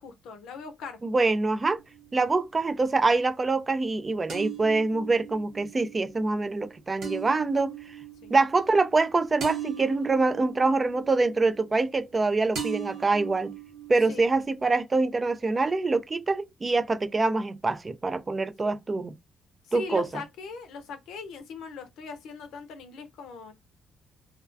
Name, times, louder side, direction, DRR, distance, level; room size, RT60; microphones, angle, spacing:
voice 1, 0.0-1.0 8.2-8.3 14.1-14.2 18.6-18.8 19.6-23.5, left 4 dB, 85° left, 0.6 m, -40 dB
voice 2, 1.0-1.8 2.1-7.7 8.3-13.5 13.9-19.1 19.7-20.1, right 3 dB, 30° right, 0.4 m, -25 dB
sound 1, 1.8-2.7 4.3-12.2 12.5-14.6, right 9 dB, 75° right, 0.9 m, -39 dB
2.3 x 2.2 x 2.5 m
cardioid pair, 90°, 0 cm